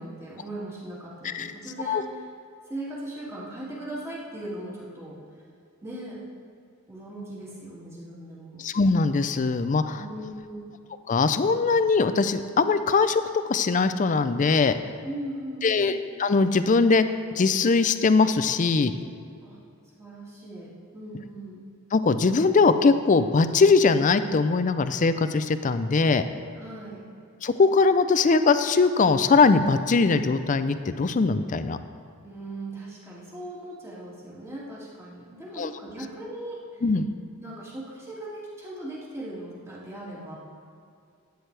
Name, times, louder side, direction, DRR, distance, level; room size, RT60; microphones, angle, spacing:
voice 1, 0.0-2.2 2.7-5.2 5.8-6.3 6.9-8.7 9.9-10.7 15.0-16.1 19.4-19.6 19.9-21.6 26.5-27.1 32.2-36.8 37.4-40.4, right 1 dB, 15° right, -7 dB, 2.3 m, -39 dB
voice 2, 8.6-10.0 11.1-13.2 13.5-14.8 15.6-15.9 16.2-17.0 17.4-18.9 21.9-26.2 27.4-31.8 35.6-35.7 36.8-37.1, left 4 dB, 40° left, 11 dB, 0.4 m, -21 dB
12.5 x 9.3 x 3.3 m, 2.4 s
head